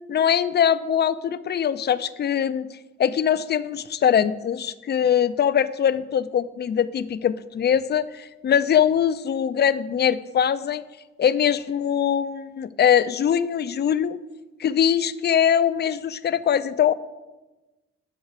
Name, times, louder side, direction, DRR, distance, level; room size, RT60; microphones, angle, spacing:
voice 1, 0.1-2.7 3.0-10.8 11.2-14.2 14.6-16.9, left 8 dB, 35° left, 14 dB, 0.4 m, -22 dB
8.7 x 4.6 x 6.4 m, 1.1 s
cardioid pair, 90°, 30 cm